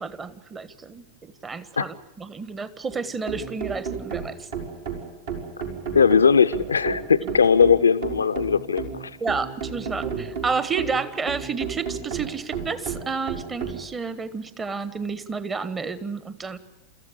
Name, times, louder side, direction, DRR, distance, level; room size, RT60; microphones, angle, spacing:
voice 1, 0.0-4.5 7.2-7.3 9.2-16.6, right 5 dB, 20° right, 14 dB, 1.4 m, -30 dB
sound 1, 2.9-13.8, right 6 dB, 60° right, 4.5 m, -33 dB
voice 2, 5.9-9.1, left 6 dB, 75° left, 12 dB, 0.8 m, -19 dB
29.5 x 14.5 x 8.5 m, 0.99 s
figure-of-eight pair, 90°, 0 cm